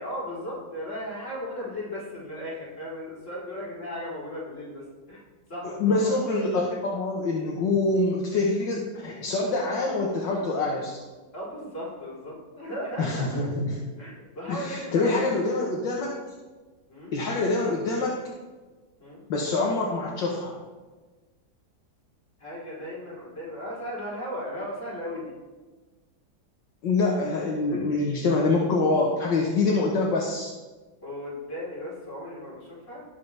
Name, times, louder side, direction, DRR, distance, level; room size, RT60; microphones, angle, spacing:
voice 1, 0.0-5.2 5.5-6.1 6.7-6.8 11.3-13.3 14.0-15.3 16.9-17.1 19.0-19.2 22.4-25.3 31.0-33.0, equal, 35° left, -7 dB, 4.2 m, -36 dB
voice 2, 5.8-11.0 13.0-13.8 14.5-16.2 17.1-18.2 19.3-20.6 26.8-30.5, left 3 dB, 65° left, -2 dB, 1.9 m, -25 dB
18.5 x 7.0 x 3.4 m, 1.3 s
omnidirectional pair, 2.2 m